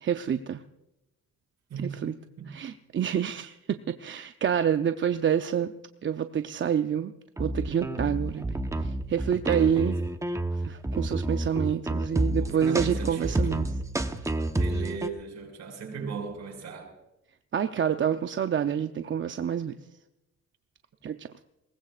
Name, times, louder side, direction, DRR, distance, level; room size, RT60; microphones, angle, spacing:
voice 1, 0.0-0.6 1.8-2.1 2.5-5.7 6.0-7.1 7.4-8.6 9.1-10.0 10.7-13.7 17.5-19.7 21.0-21.3, right 8 dB, 40° right, 0.6 m, -27 dB
sound 1, 7.4-15.1, right 1 dB, 10° right, 1.0 m, -29 dB
voice 2, 9.5-10.0 12.2-13.7 14.6-16.9, right 5 dB, 60° right, 6.2 m, -38 dB
22.0 x 19.5 x 2.5 m
cardioid pair, 90°, 30 cm